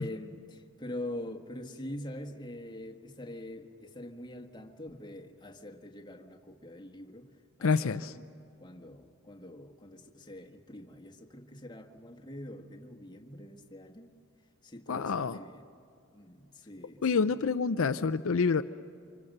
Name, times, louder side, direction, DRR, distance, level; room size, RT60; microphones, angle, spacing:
voice 1, 0.0-7.3 7.6-8.3 8.6-14.1 14.6-15.7 16.1-17.3, left 1 dB, 20° left, 2 dB, 1.5 m, -44 dB
voice 2, 7.6-8.1 14.9-15.4 17.0-18.6, left 5 dB, 70° left, 10 dB, 0.5 m, -27 dB
28.5 x 25.5 x 6.6 m, 2.5 s
head